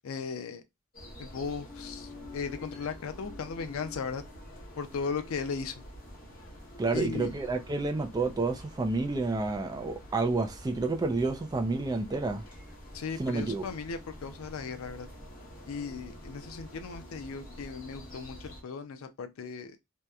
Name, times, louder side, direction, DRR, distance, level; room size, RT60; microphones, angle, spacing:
voice 1, 0.0-0.6 1.2-4.2 4.8-5.7 6.9-7.3 12.9-15.1 15.7-19.8, left 5 dB, 85° left, 0.4 m, -37 dB
sound 1, 0.9-18.6, left 1 dB, 45° left, 1.0 m, -47 dB
voice 2, 6.8-12.4 13.2-13.6, right 3 dB, 20° right, 0.3 m, -29 dB
2.8 x 2.0 x 2.3 m
head